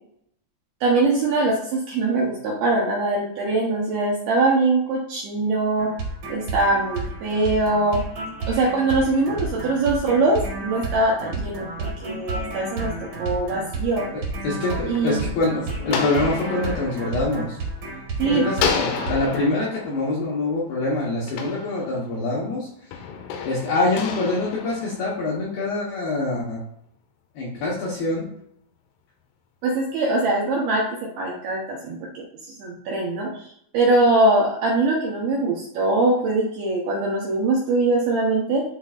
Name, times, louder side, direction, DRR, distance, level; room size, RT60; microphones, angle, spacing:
voice 1, 0.8-5.9 6.3-8.0 8.5-12.9 13.2-14.1 14.9-15.2 18.2-18.4 29.6-30.8 31.2-33.3 33.7-38.6, right 2 dB, 75° right, -4 dB, 2.3 m, -22 dB
sound 1, 5.8-19.5, right 3 dB, 55° right, 2.2 m, -31 dB
voice 2, 14.1-17.6 18.2-22.9 23.4-26.6 27.4-28.3, left 2 dB, 70° left, -5 dB, 2.3 m, -25 dB
sound 2, 14.4-18.1 18.5-22.3 22.9-25.6, left 6 dB, 90° left, 3.4 m, -32 dB
11.0 x 4.0 x 2.4 m, 0.69 s
omnidirectional pair, 5.7 m